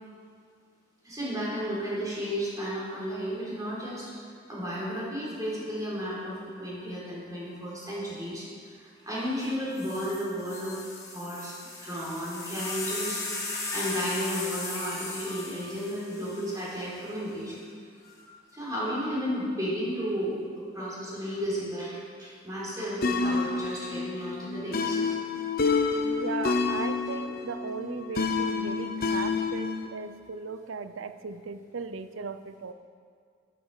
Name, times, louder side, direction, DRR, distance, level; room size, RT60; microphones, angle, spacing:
voice 1, 1.0-4.1 4.5-8.5 8.8-10.9 11.1-11.5 11.8-13.4 13.7-17.6 18.5-20.4 20.7-25.0, equal, 20° right, -7 dB, 3.8 m, -33 dB
sound 1, 9.4-9.5 9.8-17.2 18.0-18.5, left 3 dB, 15° left, 2.0 m, -37 dB
sound 2, 23.0-29.9, left 4 dB, 50° left, 0.9 m, -28 dB
voice 2, 26.0-32.7, right 4 dB, 75° right, 11 dB, 0.5 m, -37 dB
12.0 x 11.0 x 4.9 m, 2.1 s
head